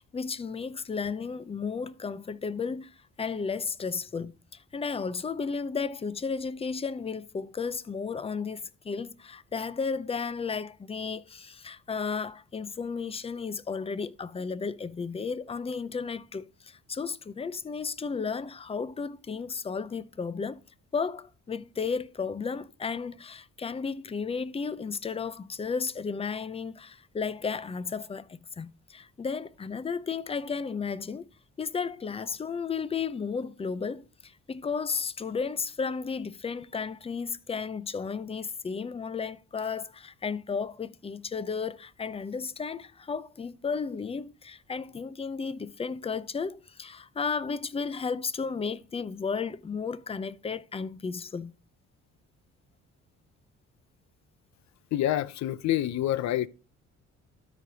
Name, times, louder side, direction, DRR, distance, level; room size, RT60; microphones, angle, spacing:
voice 1, 0.0-20.6 20.9-31.3 31.6-51.5, left 5 dB, 20° left, 0.5 m, -33 dB
voice 2, 54.9-56.5, left 13 dB, 65° left, 0.6 m, -27 dB
12.5 x 5.1 x 2.7 m
cardioid pair, 90°, 30 cm